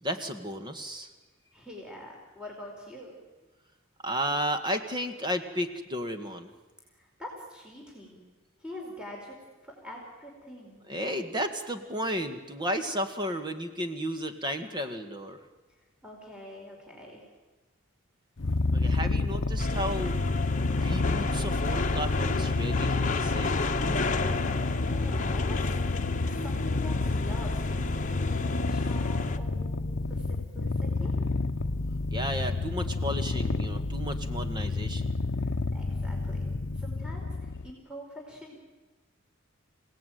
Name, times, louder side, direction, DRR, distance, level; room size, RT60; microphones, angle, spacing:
voice 1, 0.0-1.1 4.0-6.5 10.9-15.4 18.7-20.2 20.8-23.6 32.1-35.2, equal, 20° right, 7 dB, 1.9 m, -33 dB
voice 2, 1.5-3.2 6.9-8.2 8.6-9.4 9.6-10.8 16.0-17.3 24.6-27.6 28.1-29.8 30.1-31.1 35.4-36.4 36.7-38.5, left 1 dB, 5° right, -1 dB, 4.5 m, -45 dB
Purr, 18.4-37.7, left 3 dB, 60° left, 0.9 m, -30 dB
sound 1, 19.6-29.4, left 3 dB, 40° left, 1.2 m, -32 dB
28.5 x 17.5 x 9.4 m, 1.2 s
head